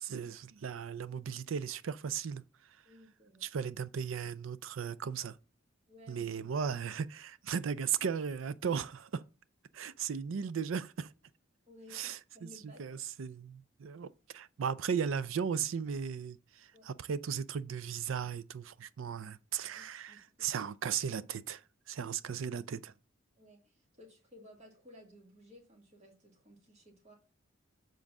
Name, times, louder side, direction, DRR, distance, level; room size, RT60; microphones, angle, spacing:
voice 1, 0.0-2.4 3.4-5.4 6.1-9.2 9.7-11.1 11.9-21.6 21.9-22.9, right 7 dB, 80° right, 0.4 m, -36 dB
voice 2, 2.8-3.5 5.9-6.3 11.7-13.0 16.7-16.9 19.7-20.5 23.4-27.1, left 1 dB, 35° right, 2.0 m, -57 dB
7.4 x 3.9 x 6.0 m
head